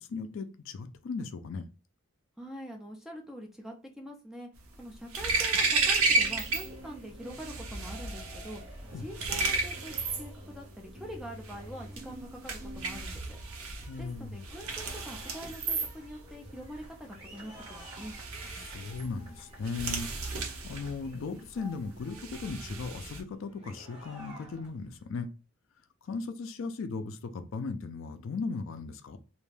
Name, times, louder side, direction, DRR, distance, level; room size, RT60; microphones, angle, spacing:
voice 1, 0.0-1.6 8.9-9.0 13.8-14.4 18.6-25.3 26.0-29.2, left 4 dB, 60° left, 0.3 m, -37 dB
voice 2, 2.4-4.5 4.8-8.6 9.0-9.9 10.2-13.4 14.0-18.1, equal, ahead, 0.4 m, -44 dB
sound 1, 4.6-6.7 7.0-23.2, right 3 dB, 80° right, 0.7 m, -33 dB
sound 2, 5.5-25.0, equal, 25° right, 0.9 m, -50 dB
2.5 x 2.2 x 3.2 m
head